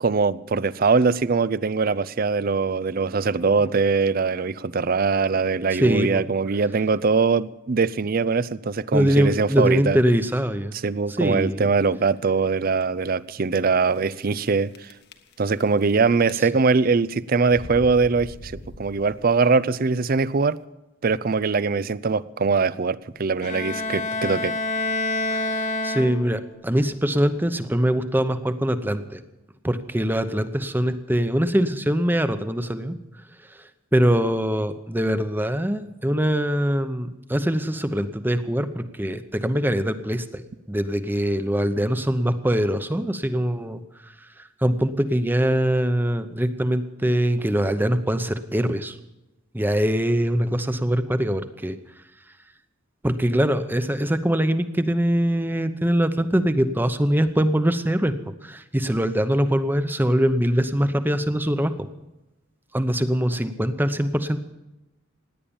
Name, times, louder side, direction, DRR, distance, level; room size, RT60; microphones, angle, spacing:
voice 1, 0.0-10.0 10.8-14.9 15.4-18.5 18.8-20.6 21.0-24.5, right 4 dB, 45° right, 19 dB, 0.5 m, -22 dB
voice 2, 5.7-6.2 8.9-10.7 11.2-11.7 25.3-29.2 29.6-33.0 33.6-43.8 44.4-49.0 49.5-51.8 53.0-58.1 58.4-61.7 62.7-64.4, equal, 10° right, 11 dB, 0.8 m, -23 dB
sound 1, 11.7-12.1 12.7-12.8 13.1-13.2 14.1-14.5 14.7-15.9 16.2-16.7 17.4-19.4, left 1 dB, 55° left, 1.3 m, -41 dB
Bowed string instrument, 23.4-26.6, left 2 dB, 35° left, 1.3 m, -27 dB
17.5 x 10.0 x 7.1 m, 0.99 s
head